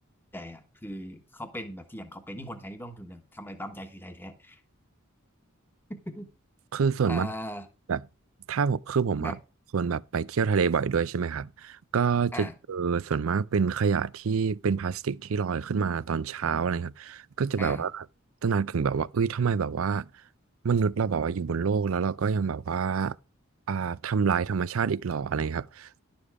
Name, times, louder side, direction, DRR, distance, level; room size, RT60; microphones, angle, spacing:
voice 1, 0.3-4.6 5.9-6.3 7.1-7.7 9.2-9.4 12.3-12.5 17.6-17.8, equal, 10° left, 1.2 m, -39 dB
voice 2, 6.7-7.3 7.9-8.0 8.5-9.4 9.7-18.0 18.4-20.1 20.6-23.1 23.7-26.0, right 6 dB, 70° right, 0.5 m, -27 dB
11.5 x 7.0 x 4.8 m
head